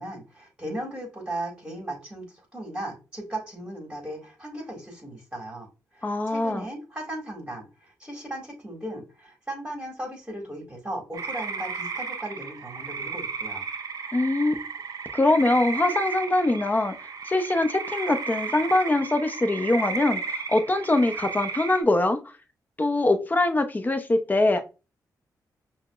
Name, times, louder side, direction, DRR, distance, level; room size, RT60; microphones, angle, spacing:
voice 1, 0.0-13.6, right 1 dB, 15° right, 1.8 m, -37 dB
voice 2, 6.0-6.7 14.1-14.6 15.1-16.9 17.3-22.2 22.8-24.6, left 2 dB, 25° left, 0.6 m, -23 dB
sound 1, 11.1-21.8, right 5 dB, 55° right, 0.5 m, -34 dB
5.6 x 2.0 x 2.3 m
cardioid pair, 70°, 7 cm